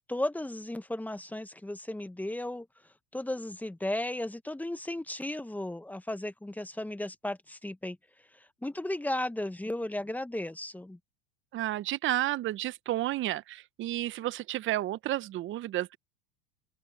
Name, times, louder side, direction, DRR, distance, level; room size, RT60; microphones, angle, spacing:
voice 1, 0.0-2.7 3.1-8.0 8.3-11.0, left 1 dB, 5° left, 1.5 m, -35 dB
voice 2, 11.5-16.0, right 14 dB, 45° right, 1.1 m, -31 dB
open air
hypercardioid pair, 80°, 29 cm